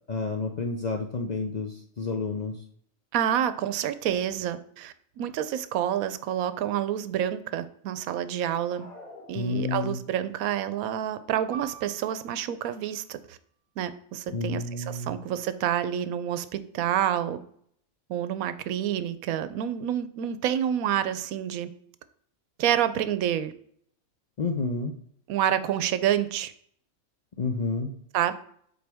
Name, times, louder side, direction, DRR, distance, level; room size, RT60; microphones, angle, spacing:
voice 1, 0.1-2.6 9.3-10.0 14.3-15.2 24.4-24.9 27.4-27.9, left 3 dB, 55° left, 2 dB, 0.5 m, -30 dB
voice 2, 3.1-8.9 9.3-13.4 13.8-17.4 18.1-21.7 22.6-23.5 25.3-26.5 28.1-28.3, right 10 dB, 80° right, 13 dB, 1.0 m, -28 dB
sound 1, 8.4-10.1, left 2 dB, 80° left, 2.4 m, -49 dB
Piano, 11.5-16.6 16.9-17.1 17.8-18.2, right 10 dB, 25° right, 1.0 m, -48 dB
7.8 x 4.3 x 3.5 m, 0.64 s
omnidirectional pair, 1.5 m